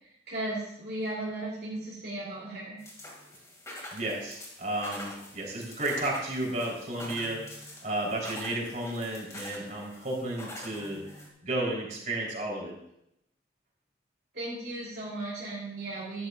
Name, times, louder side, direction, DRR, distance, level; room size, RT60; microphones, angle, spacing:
voice 1, 0.0-2.8 14.3-16.3, right 2 dB, 60° right, -6 dB, 2.9 m, -36 dB
sound 1, 2.8-11.3, left 1 dB, 15° left, 2.2 m, -45 dB
voice 2, 3.9-7.5 7.8-11.0 11.4-12.7, right 1 dB, 45° right, -3 dB, 3.6 m, -32 dB
14.0 x 11.0 x 2.4 m, 0.78 s
head